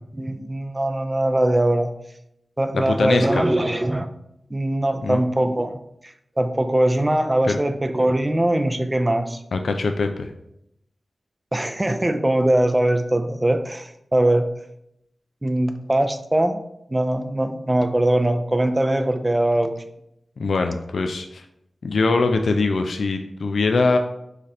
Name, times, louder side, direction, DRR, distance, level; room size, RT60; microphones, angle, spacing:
voice 1, 0.1-1.9 2.6-4.1 4.5-5.8 6.0-9.4 11.5-14.5 15.4-16.6 16.9-19.8, right 1 dB, 20° right, 8 dB, 0.4 m, -21 dB
voice 2, 2.7-3.4 5.0-5.2 7.4-7.6 9.5-10.3 20.4-21.5 21.8-24.0, left 3 dB, 80° left, 5 dB, 0.4 m, -22 dB
3.7 x 3.3 x 4.2 m, 0.79 s
wide cardioid pair, 90°, 0 cm